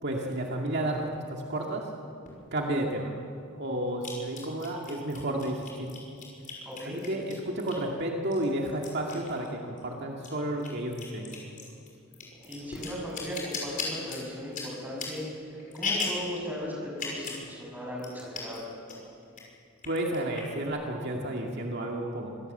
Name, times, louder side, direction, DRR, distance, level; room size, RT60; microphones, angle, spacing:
voice 1, 0.0-1.8 2.5-3.1 3.6-5.9 6.9-11.4 19.8-22.4, right 1 dB, 55° right, 0 dB, 2.2 m, -31 dB
sound 1, 2.3-2.4 4.0-7.9 8.3-9.9 10.1-16.3 16.9-17.5 17.7-17.8 18.0-18.6 18.9-19.4 19.8-20.7, left 4 dB, 40° left, 5.9 m, -37 dB
voice 2, 6.6-7.0 12.4-18.7, left 1 dB, 10° right, -2 dB, 6.8 m, -37 dB
25.5 x 17.0 x 8.0 m, 2.5 s
head